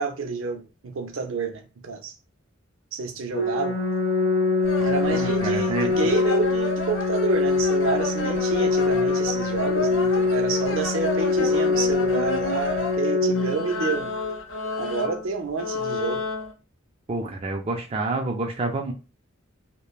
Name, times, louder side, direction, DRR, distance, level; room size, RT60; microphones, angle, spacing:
voice 1, 0.0-2.1 2.9-3.8 4.8-14.1 14.8-16.2, right 4 dB, 80° right, 0.6 m, -29 dB
Organ, 3.3-14.3, left 3 dB, 50° left, 1.1 m, -24 dB
sound 1, 4.6-13.0 13.3-16.5, left 3 dB, 70° left, 0.6 m, -32 dB
voice 2, 5.1-6.0 17.1-18.9, right 3 dB, 30° right, 0.4 m, -28 dB
3.1 x 2.1 x 2.3 m
head